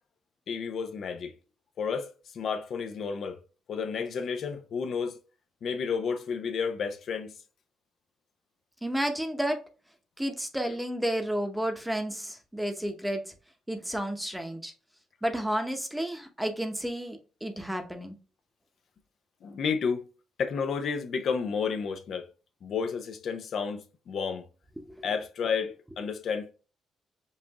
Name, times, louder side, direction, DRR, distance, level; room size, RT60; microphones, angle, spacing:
voice 1, 0.5-1.3 1.8-3.4 3.7-5.2 5.6-7.3 19.4-20.0 20.4-22.3 22.6-24.4 25.0-26.5, left 6 dB, 60° left, 0.6 m, -31 dB
voice 2, 8.8-9.6 10.2-13.2 13.7-14.7 15.2-18.1 24.8-24.9, equal, 5° right, 0.8 m, -31 dB
5.5 x 2.5 x 2.9 m
cardioid pair, 90°, 0 cm